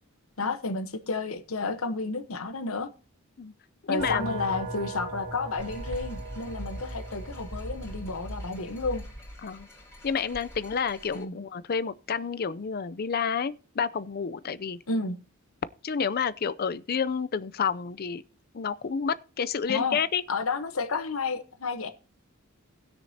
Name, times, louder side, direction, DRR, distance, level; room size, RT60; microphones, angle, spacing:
voice 1, 0.4-2.9 3.9-9.1 11.1-11.4 14.9-15.2 19.7-20.0 20.3-21.9, left 3 dB, 80° left, 1.0 m, -31 dB
voice 2, 3.8-4.4 9.4-9.7 10.0-14.8 15.8-18.2 18.5-20.2, left 6 dB, 45° left, 0.5 m, -30 dB
sound 1, 4.0-9.0, right 2 dB, 80° right, 2.7 m, -39 dB
sound 2, 5.6-11.2, equal, 15° left, 3.2 m, -42 dB
19.5 x 6.5 x 2.8 m
head